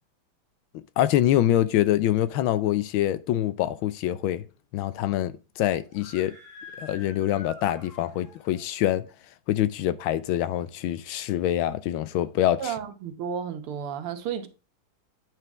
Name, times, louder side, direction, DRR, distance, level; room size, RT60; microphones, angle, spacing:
voice 1, 1.0-4.4 4.7-6.3 6.8-9.0 9.5-12.7, left 12 dB, 75° left, 1.3 m, -25 dB
Screaming, 5.9-8.7, left 2 dB, 30° left, 2.3 m, -47 dB
voice 2, 12.6-14.5, right 8 dB, 80° right, 1.9 m, -32 dB
9.1 x 5.8 x 3.5 m
omnidirectional pair, 2.4 m